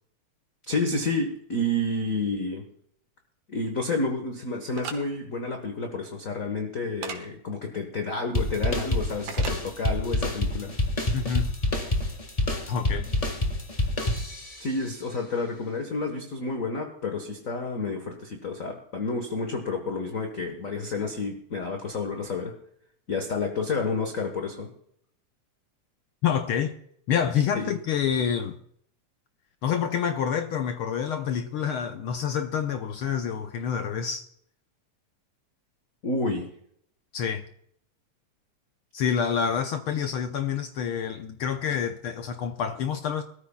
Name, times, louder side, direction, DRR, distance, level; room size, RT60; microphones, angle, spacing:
voice 1, 0.7-2.6 3.5-10.7 14.6-22.6 23.1-24.7 27.5-27.7 36.0-36.5, left 2 dB, 45° left, 1.1 m, -30 dB
sound 1, 4.8-5.0 7.0-7.2 9.3-9.6, right 7 dB, 80° right, 2.8 m, -35 dB
sound 2, 8.3-14.7, left 1 dB, 25° left, 0.7 m, -27 dB
voice 2, 11.1-11.6 12.7-13.1 26.2-26.8 27.1-28.6 29.6-34.2 37.1-37.5 38.9-43.2, left 7 dB, 80° left, 1.2 m, -27 dB
22.5 x 13.5 x 2.3 m
omnidirectional pair, 3.3 m